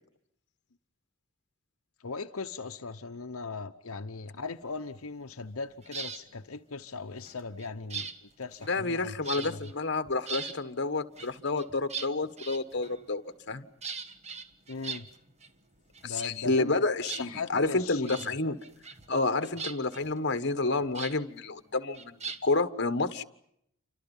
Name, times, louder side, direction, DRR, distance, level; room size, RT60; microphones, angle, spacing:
voice 1, 2.0-9.7 14.7-15.1 16.0-16.8 17.2-18.5 19.4-19.5, left 4 dB, 80° left, 0.9 m, -39 dB
sound 1, 5.8-6.2 7.2-9.0 9.3-9.7 10.1-10.6 11.2-13.1 13.8-15.5 15.8-16.7 17.0-17.7 18.1-18.3 18.6-19.1 19.4-21.2 21.9-22.6, right 5 dB, 30° right, 1.3 m, -40 dB
voice 2, 8.7-13.7 16.0-18.6 19.1-23.2, left 3 dB, 55° left, 1.5 m, -29 dB
29.0 x 26.0 x 5.6 m
head